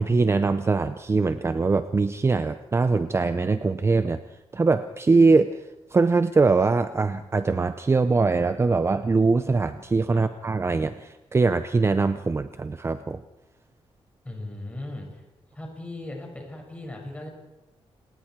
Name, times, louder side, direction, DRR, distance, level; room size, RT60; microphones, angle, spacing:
voice 1, 0.0-4.2 4.5-5.6 5.9-13.2, right 4 dB, 25° right, 11 dB, 0.6 m, -22 dB
voice 2, 14.2-15.2 15.5-17.3, left 1 dB, 10° left, 1 dB, 6.2 m, -37 dB
28.5 x 19.5 x 4.7 m, 0.95 s
wide cardioid pair, 145°, 11 cm